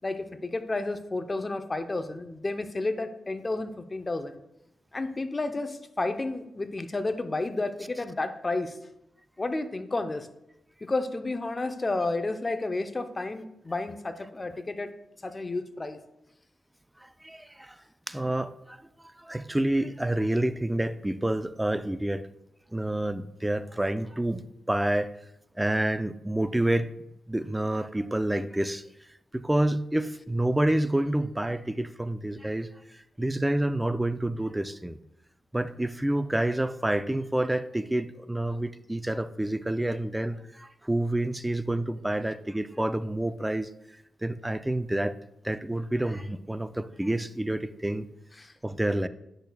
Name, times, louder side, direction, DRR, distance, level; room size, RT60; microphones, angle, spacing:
voice 1, 0.0-4.4 4.9-8.8 9.4-10.3 10.8-14.9 15.2-16.0 48.4-48.5, left 2 dB, 35° left, 9 dB, 0.7 m, -31 dB
voice 2, 17.0-22.2 22.7-25.2 25.6-26.9 27.3-28.8 29.3-35.0 35.5-43.7 44.2-45.2 45.4-48.1 48.6-49.1, right 1 dB, 15° right, 12 dB, 0.5 m, -28 dB
10.0 x 6.4 x 2.3 m, 0.85 s
supercardioid pair, 40°, 0 cm